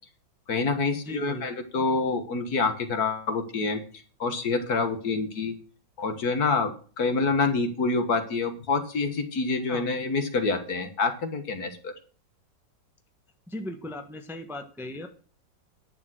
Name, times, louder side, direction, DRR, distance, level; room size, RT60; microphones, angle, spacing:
voice 1, 0.5-3.8 4.2-5.6 6.0-11.9, left 4 dB, 55° left, 8 dB, 1.9 m, -27 dB
voice 2, 1.0-1.5 9.7-9.9 13.5-15.1, left 1 dB, ahead, 6 dB, 1.1 m, -37 dB
11.0 x 7.0 x 6.2 m, 0.41 s
omnidirectional pair, 2.0 m